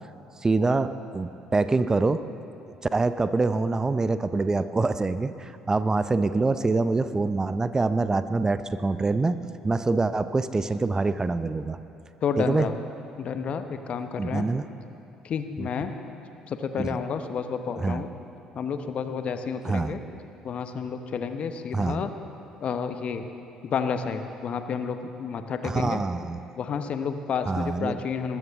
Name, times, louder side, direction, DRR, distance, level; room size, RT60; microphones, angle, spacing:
voice 1, 0.4-2.3 2.9-9.4 9.6-11.8 12.4-12.7 14.2-14.6 15.6-15.7 16.8-16.9 17.8-18.0 19.6-20.0 21.7-22.0 25.6-26.4 27.5-28.0, right 3 dB, 25° right, 13 dB, 0.5 m, -25 dB
voice 2, 12.2-12.7 13.2-14.5 15.2-15.9 16.5-18.1 18.5-20.0 20.4-22.1 22.6-23.3 23.6-26.0 26.6-28.4, left 6 dB, 50° left, 8 dB, 0.9 m, -30 dB
20.5 x 14.0 x 3.6 m, 2.8 s
hypercardioid pair, 55°, 3 cm